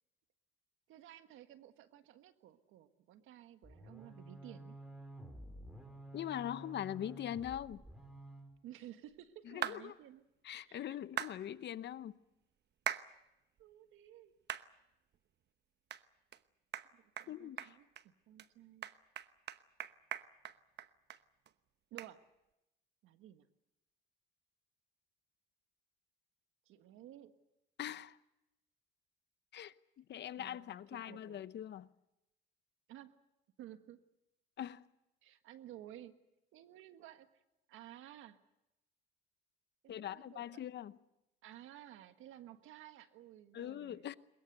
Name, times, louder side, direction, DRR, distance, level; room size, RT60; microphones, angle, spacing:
voice 1, 0.9-4.7 8.6-10.2 10.6-11.0 13.6-14.3 16.9-18.9 21.9-22.2 23.0-23.5 26.7-27.3 30.4-31.5 32.9-33.1 33.6-34.0 35.2-36.1 36.5-37.4 37.7-38.4 39.8-40.4 41.4-44.1, right 12 dB, 80° right, 1.6 m, -54 dB
sound 1, 3.6-8.5, right 1 dB, ahead, 6.5 m, -52 dB
voice 2, 6.1-7.8 9.5-9.9 10.4-12.2 17.3-17.8 27.8-28.2 29.5-31.9 34.6-34.9 39.9-41.0 43.5-44.1, left 11 dB, 60° left, 0.9 m, -42 dB
sound 2, 9.6-9.8 11.2-11.3 12.9-13.1 13.6-13.7 14.5-14.7 15.1-15.2 15.9-16.0 16.3-16.4 16.7-16.9 17.2-17.3 17.6-18.0 18.4-18.5 18.8-21.2 21.5-21.6 22.0-22.1, right 10 dB, 60° right, 1.0 m, -40 dB
22.5 x 21.5 x 8.1 m
cardioid pair, 85°, 20 cm